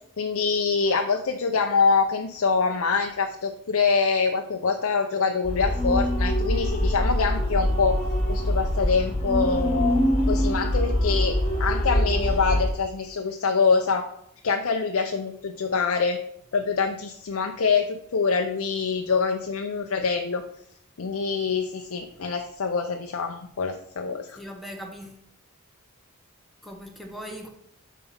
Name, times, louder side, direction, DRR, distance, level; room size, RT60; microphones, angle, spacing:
voice 1, 0.2-8.0 8.3-10.0 10.3-14.1 14.4-16.2 16.5-20.4 21.0-24.4, left 5 dB, 65° left, 0.5 m, -25 dB
sound 1, 5.4-12.7, equal, 25° left, 1.6 m, -24 dB
voice 2, 24.4-25.2 26.6-27.5, equal, ahead, 0.7 m, -39 dB
5.6 x 4.1 x 5.7 m
head